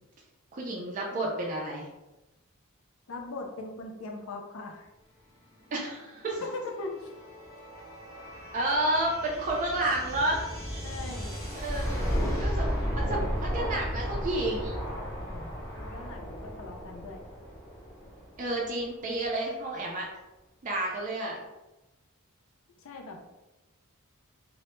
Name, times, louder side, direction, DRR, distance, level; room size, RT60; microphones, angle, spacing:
voice 1, 0.5-1.9 5.7-6.4 8.5-10.5 11.5-12.1 12.4-14.8 18.4-20.1 20.6-21.4, right 1 dB, 35° right, -2 dB, 0.3 m, -30 dB
voice 2, 3.1-4.9 6.4-7.1 8.2-8.3 10.8-11.3 15.2-17.2 22.8-23.2, left 3 dB, 70° left, 2 dB, 0.4 m, -40 dB
sound 1, 5.6-19.1, equal, 15° left, 0.6 m, -35 dB
2.1 x 2.0 x 2.9 m, 1.0 s
head